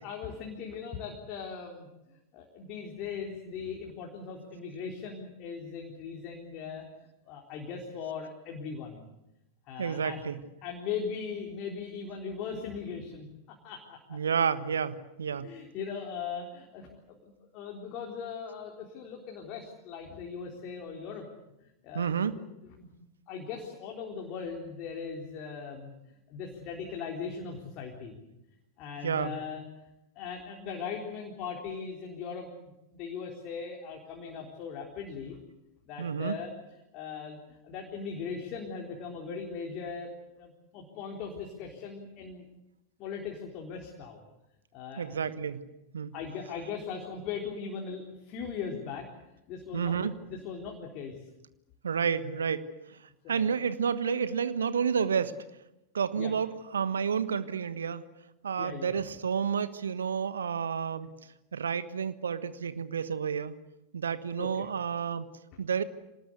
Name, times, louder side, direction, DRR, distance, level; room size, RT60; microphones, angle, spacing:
voice 1, 0.0-6.8 7.2-9.0 9.7-10.2 10.6-14.2 15.3-21.3 21.6-22.4 22.8-22.9 23.3-25.9 26.3-28.1 28.8-29.6 30.2-32.5 32.9-35.4 35.9-40.1 40.4-42.4 43.0-44.2 44.7-45.2 46.1-49.1 49.3-51.2 53.2-53.6 56.2-56.3 58.6-59.0 64.4-64.7, left 6 dB, 40° left, 0 dB, 3.8 m, -39 dB
voice 2, 9.8-10.3 14.1-15.5 21.9-22.4 29.0-29.3 36.0-36.4 45.0-45.6 45.9-46.1 49.7-50.2 51.8-52.7 53.3-55.3 55.9-58.0 58.4-61.1 61.5-63.5 63.9-65.3 65.6-65.8, right 7 dB, 70° right, 13 dB, 1.3 m, -30 dB
26.5 x 19.5 x 8.2 m, 0.90 s
figure-of-eight pair, 90°, 0 cm